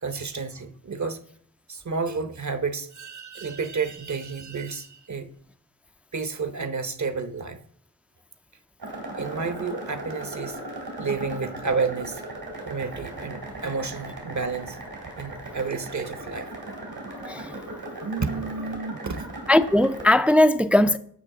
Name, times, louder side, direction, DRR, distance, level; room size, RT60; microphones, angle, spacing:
voice 1, 0.0-1.2 1.7-5.3 6.1-7.6 9.1-10.6 11.0-12.2 12.7-14.8 15.2-16.5 18.0-19.3, right 4 dB, 50° right, 0.9 m, -30 dB
sound 1, 8.8-20.1, right 2 dB, 85° right, 3.3 m, -37 dB
voice 2, 17.1-17.6 19.5-21.0, left 1 dB, 5° right, 0.4 m, -19 dB
12.5 x 5.5 x 3.7 m
cardioid pair, 45°, 36 cm